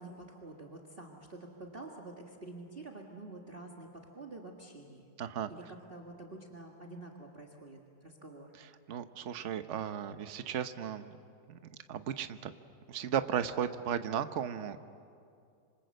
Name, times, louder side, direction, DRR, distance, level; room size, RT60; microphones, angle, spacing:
voice 1, 0.0-5.1 5.5-8.5, right 2 dB, 30° right, 0 dB, 2.0 m, -48 dB
voice 2, 5.2-5.5 8.9-11.2 11.5-11.6 11.9-12.5 12.9-14.8, right 9 dB, 50° right, 10 dB, 1.1 m, -35 dB
26.5 x 26.0 x 7.8 m, 2.4 s
omnidirectional pair, 1.9 m